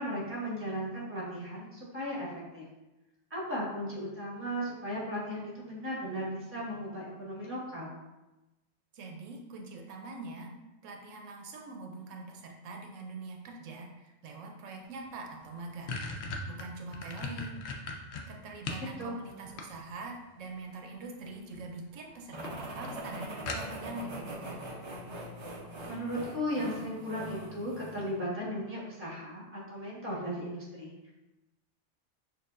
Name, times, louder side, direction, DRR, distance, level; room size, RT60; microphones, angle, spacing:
voice 1, 0.0-2.7 3.3-7.9 19.0-19.1 25.9-31.1, equal, 10° right, -5 dB, 1.0 m, -36 dB
voice 2, 8.9-10.5 10.8-16.0 16.5-17.6 18.3-24.6, right 3 dB, 80° right, 2 dB, 0.9 m, -44 dB
sound 1, 15.0-15.1 15.4-18.9 19.3-20.2 21.3-21.7 22.0-22.1 22.4-22.5 22.8-22.9 23.5-24.0, left 3 dB, 70° left, 0.8 m, -38 dB
sound 2, 22.3-28.1, right 1 dB, 45° right, 0.3 m, -42 dB
6.3 x 2.5 x 2.4 m, 1.0 s
omnidirectional pair, 1.3 m